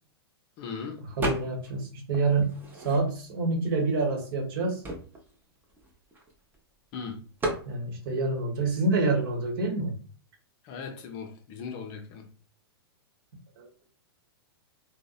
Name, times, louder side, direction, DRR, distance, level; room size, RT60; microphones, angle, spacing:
voice 1, 0.6-1.1 6.9-7.2 10.6-12.3, left 5 dB, 40° left, 0.5 m, -38 dB
sound 1, 1.2-1.8 2.1-3.4 4.0-4.1 4.3-6.6 7.4-7.7, right 1 dB, 15° right, 0.6 m, -34 dB
voice 2, 1.2-2.5 2.8-4.8 7.6-9.9 13.6-13.7, right 3 dB, 60° right, 0.9 m, -27 dB
2.6 x 2.0 x 2.3 m
hypercardioid pair, 115°, 13 cm